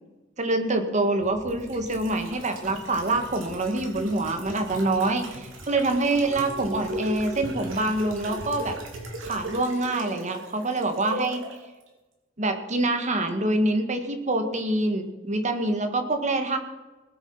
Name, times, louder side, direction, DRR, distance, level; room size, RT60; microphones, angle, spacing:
voice 1, 0.4-8.7 9.2-11.4 12.4-16.6, right 2 dB, 35° right, 6 dB, 1.7 m, -26 dB
sound 1, 1.2-11.6 11.9-12.0, right 1 dB, 80° right, 3.3 m, -38 dB
19.5 x 8.3 x 5.7 m, 1.1 s
head